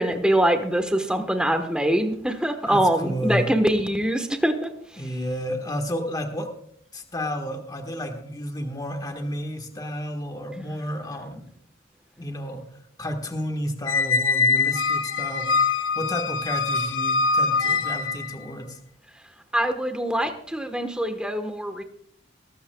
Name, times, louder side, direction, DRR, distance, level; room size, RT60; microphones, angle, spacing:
voice 1, 0.0-4.7 19.5-21.8, right 1 dB, 5° right, 7 dB, 1.2 m, -23 dB
voice 2, 2.6-3.5 5.0-6.5 6.9-11.5 12.2-12.6 13.0-18.8, equal, 20° left, 4 dB, 1.5 m, -31 dB
Squeak, 13.9-18.3, left 4 dB, 75° left, 0.9 m, -23 dB
21.5 x 13.0 x 2.3 m, 0.65 s
head